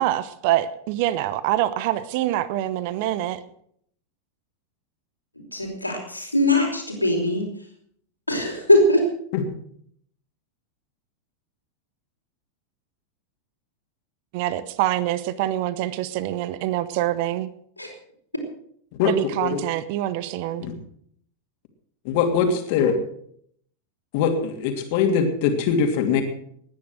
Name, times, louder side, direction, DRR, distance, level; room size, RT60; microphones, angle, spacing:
voice 1, 0.0-3.4 14.3-17.5 19.0-20.6, right 13 dB, 45° right, 16 dB, 0.9 m, -25 dB
voice 2, 5.5-7.5 8.3-9.0 17.8-17.9, left 1 dB, 85° left, 1 dB, 4.7 m, -21 dB
voice 3, 19.0-19.6 20.6-20.7 22.0-22.9 24.1-26.2, left 6 dB, 50° left, 5 dB, 2.9 m, -22 dB
19.5 x 10.5 x 6.4 m, 0.66 s
figure-of-eight pair, 90°, 0 cm